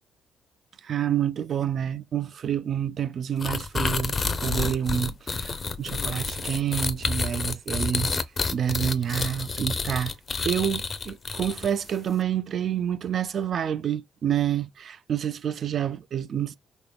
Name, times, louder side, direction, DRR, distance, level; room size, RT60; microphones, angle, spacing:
voice 1, 0.8-8.1 8.5-10.1 10.4-16.6, right 9 dB, 55° right, 0.3 m, -28 dB
sound 1, 3.4-11.9, left 4 dB, 35° left, 0.6 m, -29 dB
3.9 x 3.5 x 2.2 m
cardioid pair, 90°, 0 cm